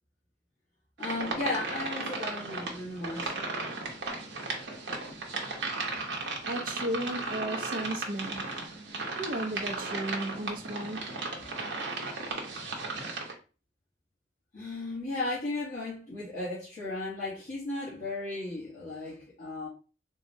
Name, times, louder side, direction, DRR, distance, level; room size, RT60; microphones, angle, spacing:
voice 1, 1.0-3.3 14.5-19.7, left 2 dB, 45° left, 1.0 m, -35 dB
sound 1, 1.0-13.3, right 3 dB, 75° right, 0.8 m, -35 dB
voice 2, 6.5-8.7 9.1-11.1, right 1 dB, 50° right, 0.5 m, -35 dB
3.7 x 2.1 x 2.6 m
head